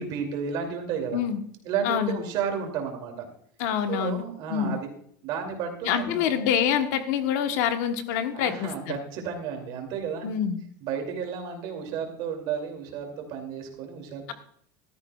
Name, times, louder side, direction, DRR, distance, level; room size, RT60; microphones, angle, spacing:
voice 1, 0.0-1.2 1.6-3.3 3.9-4.9 5.2-6.4 8.3-10.3 10.8-14.3, right 6 dB, 45° right, 3 dB, 2.6 m, -32 dB
voice 2, 1.8-2.2 3.6-4.2 4.5-4.8 5.8-9.0 10.2-10.6, left 8 dB, 60° left, 7 dB, 1.2 m, -26 dB
15.0 x 13.0 x 2.3 m, 0.63 s
supercardioid pair, 160°, 10 cm